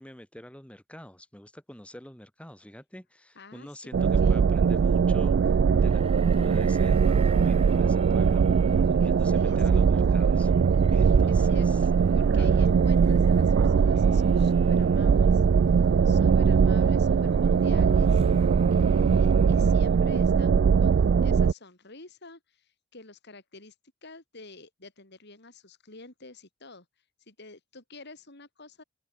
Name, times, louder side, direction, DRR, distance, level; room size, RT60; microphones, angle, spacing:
voice 1, 0.0-10.5 10.9-11.8 12.4-12.6, equal, 5° left, 2.8 m, -46 dB
voice 2, 3.4-4.4 9.3-9.9 11.0-23.7 24.0-26.9 27.3-28.8, left 3 dB, 55° left, 4.0 m, -50 dB
sound 1, 3.9-21.5, right 6 dB, 60° right, 0.3 m, -21 dB
sound 2, 5.7-20.3, right 2 dB, 30° right, 2.4 m, -44 dB
head